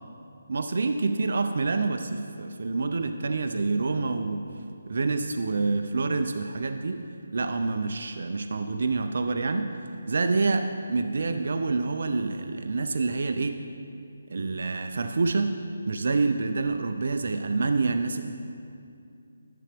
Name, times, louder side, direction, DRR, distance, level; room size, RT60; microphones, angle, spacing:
voice 1, 0.5-4.4 4.9-7.0 7.3-9.7 10.1-13.6 14.3-15.5 15.9-18.3, right 3 dB, 60° right, 7 dB, 0.4 m, -27 dB
10.5 x 6.9 x 3.4 m, 2.5 s
hypercardioid pair, 165°, 0 cm